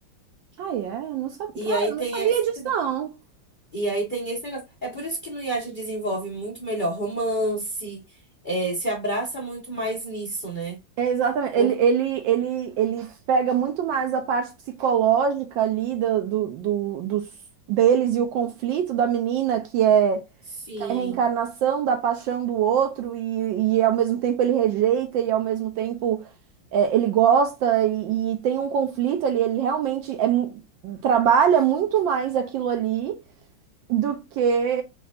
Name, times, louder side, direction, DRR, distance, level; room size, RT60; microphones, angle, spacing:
voice 1, 0.6-3.1 11.0-14.5 14.8-17.3 17.7-20.2 20.8-26.3 26.7-33.2 33.9-34.8, right 8 dB, 75° right, 1.2 m, -23 dB
voice 2, 1.5-2.3 3.7-8.0 8.4-10.8 11.6-11.7 20.6-21.2, right 1 dB, 35° left, 0.8 m, -29 dB
5.3 x 2.4 x 2.4 m
omnidirectional pair, 2.4 m